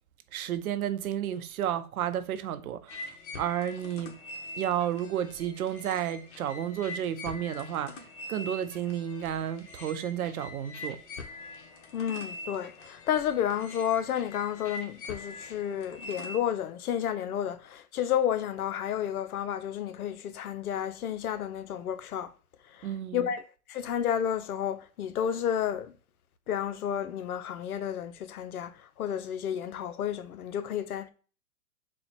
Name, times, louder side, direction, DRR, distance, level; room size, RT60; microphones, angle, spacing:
voice 1, 0.3-3.0 3.4-4.2 4.6-11.0 22.8-23.3, right 10 dB, 75° right, 0.7 m, -32 dB
sound 1, 2.9-16.4, left 2 dB, 55° left, 1.1 m, -43 dB
voice 2, 11.9-22.3 22.7-22.9 23.1-23.4 23.7-25.9 26.5-31.1, left 9 dB, 90° left, 0.6 m, -31 dB
4.2 x 2.3 x 4.3 m
hypercardioid pair, 135°, 43 cm